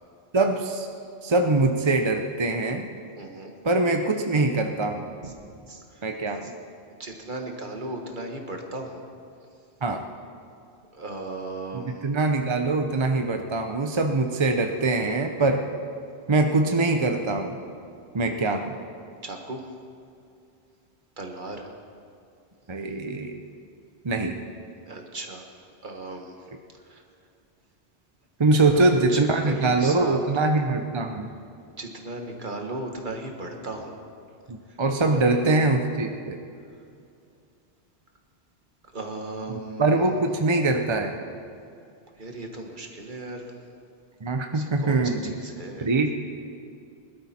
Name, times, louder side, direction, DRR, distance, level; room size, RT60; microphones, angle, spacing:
voice 1, 0.3-0.9 1.2-2.9 3.6-5.1 6.0-6.5 9.8-10.0 11.7-15.6 16.3-17.6 18.1-18.7 22.7-23.4 24.0-24.3 28.4-31.3 34.5-36.4 39.5-41.2 44.2-45.3 45.8-46.1, right 2 dB, 30° right, 5 dB, 0.6 m, -23 dB
voice 2, 3.2-3.5 5.2-5.4 5.6-6.1 6.4-6.5 7.0-9.0 10.9-12.1 19.2-19.7 21.2-21.7 24.8-25.5 25.8-26.5 26.7-27.0 28.5-30.2 31.8-34.0 34.7-35.2 38.9-40.2 42.2-43.6 44.5-45.9, right 2 dB, 50° right, 3 dB, 1.6 m, -36 dB
21.0 x 12.5 x 4.3 m, 2.5 s
omnidirectional pair, 1.1 m